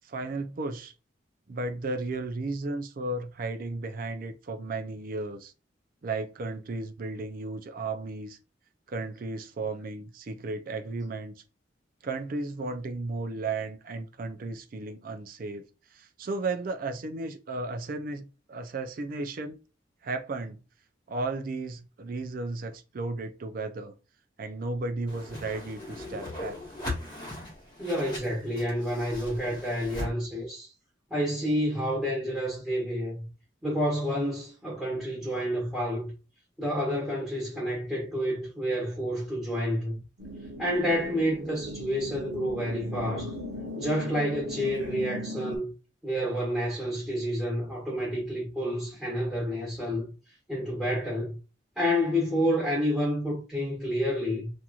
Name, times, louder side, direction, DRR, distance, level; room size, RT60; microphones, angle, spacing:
voice 1, 0.1-0.9 1.5-5.5 6.0-8.4 8.9-11.3 12.0-15.7 15.9-19.6 20.0-20.6 21.1-23.9 24.4-26.6, right 3 dB, 50° right, 0.4 m, -34 dB
Whoosh swoosh swish, 25.1-30.1, left 1 dB, 20° left, 1.2 m, -39 dB
voice 2, 27.8-30.7 31.1-33.3 33.6-36.1 36.6-40.0 40.6-43.3 43.8-45.7 46.0-50.0 50.5-51.4 51.8-54.5, equal, ahead, 1.2 m, -29 dB
sound 1, 40.2-45.6, equal, 85° right, 0.9 m, -38 dB
2.9 x 2.5 x 2.3 m
head